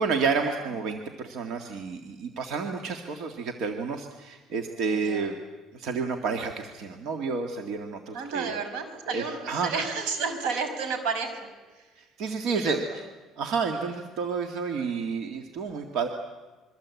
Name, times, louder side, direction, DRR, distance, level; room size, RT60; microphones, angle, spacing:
voice 1, 0.0-5.4 5.7-8.5 9.1-9.7 12.2-13.0 13.4-16.1, right 5 dB, 55° right, 5 dB, 2.0 m, -30 dB
voice 2, 4.8-5.3 8.1-11.5 12.5-13.0, right 5 dB, 85° right, 8 dB, 5.6 m, -32 dB
26.5 x 23.5 x 8.4 m, 1.3 s
cardioid pair, 165°, 0 cm